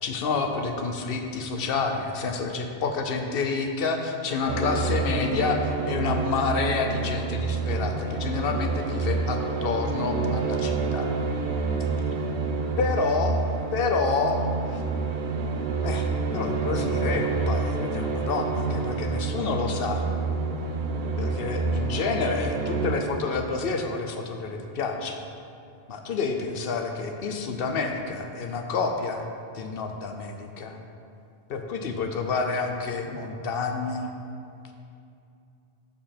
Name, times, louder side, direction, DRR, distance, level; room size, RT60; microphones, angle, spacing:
voice 1, 0.0-11.1 12.8-13.4 13.7-14.4 14.7-14.8 15.8-20.1 21.2-25.3 25.9-29.2 29.5-30.8 31.5-34.1, left 4 dB, 65° left, 4 dB, 0.8 m, -29 dB
sound 1, 4.5-22.9, right 4 dB, 80° right, 1.0 m, -28 dB
7.0 x 5.3 x 4.3 m, 2.6 s
omnidirectional pair, 1.1 m